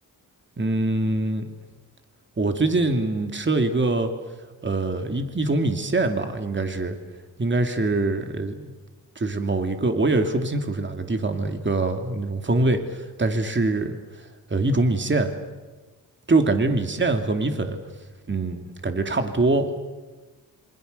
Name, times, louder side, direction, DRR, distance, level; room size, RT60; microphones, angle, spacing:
voice 1, 0.6-1.5 2.4-4.1 4.6-7.0 7.4-8.7 9.2-15.3 16.3-17.8 18.3-19.8, right 2 dB, 30° right, 6 dB, 2.7 m, -24 dB
27.5 x 26.0 x 6.8 m, 1.3 s
wide cardioid pair, 100°, 36 cm